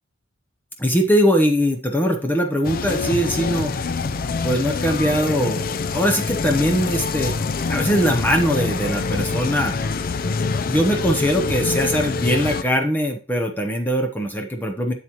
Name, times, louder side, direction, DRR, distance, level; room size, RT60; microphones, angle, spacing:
voice 1, 0.8-3.7 4.4-5.6 5.9-7.4 7.7-9.8 10.7-14.9, equal, 10° left, 3 dB, 0.8 m, -21 dB
sound 1, 2.6-12.6, left 4 dB, 45° left, 0.4 m, -25 dB
8.0 x 7.4 x 3.0 m, 0.33 s
head